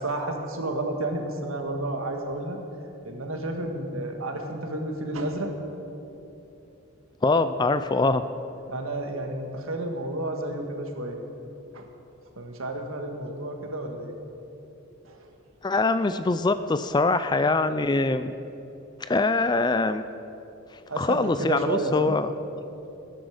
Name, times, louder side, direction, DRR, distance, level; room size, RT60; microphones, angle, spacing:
voice 1, 0.0-2.6 3.0-5.5 8.7-11.2 11.7-11.9 12.4-14.1 15.1-15.3 20.9-22.1, right 1 dB, 70° right, 3 dB, 1.7 m, -31 dB
voice 2, 7.2-8.2 15.6-18.3 19.0-20.0 21.0-22.3, left 3 dB, 20° left, 11 dB, 0.3 m, -23 dB
20.0 x 10.5 x 5.0 m, 2.9 s
head